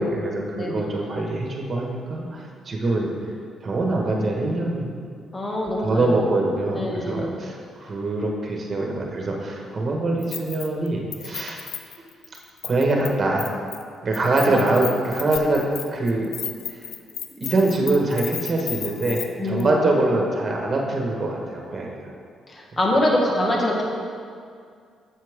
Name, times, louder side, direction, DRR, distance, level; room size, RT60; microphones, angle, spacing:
voice 1, 0.0-3.1 3.6-5.0 5.8-11.6 12.0-12.1 12.6-13.5 14.0-15.6 15.9-16.3 16.7-16.8 17.4-22.1, right 2 dB, 45° right, 0 dB, 1.5 m, -24 dB
voice 2, 5.3-6.2 6.7-7.3 14.5-14.6 19.4-19.8 22.5-23.8, left 1 dB, 25° left, -1 dB, 1.5 m, -24 dB
Keys jangling, 10.2-10.9 11.1-13.1 13.4-13.8 14.1-19.3 19.6-19.7, left 9 dB, 70° left, 0.4 m, -34 dB
7.5 x 6.5 x 3.7 m, 2.2 s
supercardioid pair, 70°, 0 cm